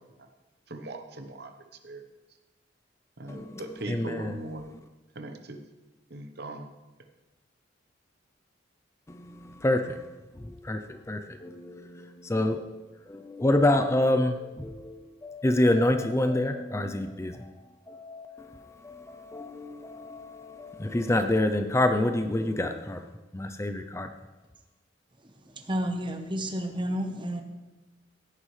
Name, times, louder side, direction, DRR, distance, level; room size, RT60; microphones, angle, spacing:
voice 1, 0.7-1.5 1.8-2.0 3.2-4.6 5.1-5.6 6.1-6.7, right 2 dB, 60° right, 6 dB, 1.0 m, -39 dB
voice 2, 3.3-4.4 9.1-10.0 10.4-12.7 13.1-17.5 17.9-24.1, left 1 dB, 15° left, 7 dB, 0.5 m, -28 dB
voice 3, 25.7-27.4, equal, 25° right, 6 dB, 1.0 m, -30 dB
16.0 x 9.6 x 3.3 m, 1.1 s
head